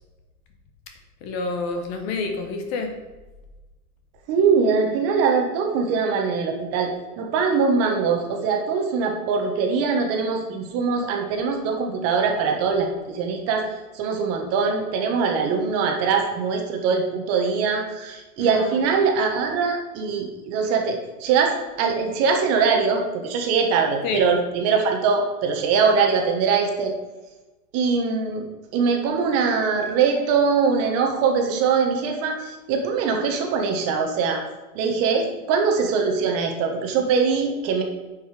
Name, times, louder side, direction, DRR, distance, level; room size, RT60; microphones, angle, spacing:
voice 1, 1.2-2.9 18.4-18.7 24.0-24.2, left 3 dB, 35° left, 5 dB, 1.2 m, -28 dB
voice 2, 4.3-13.6 13.9-26.9 27.7-28.5 28.7-34.4 34.7-37.8, right 5 dB, 30° right, 3 dB, 1.3 m, -22 dB
9.3 x 5.5 x 5.0 m, 1.1 s
hypercardioid pair, 145°, 45 cm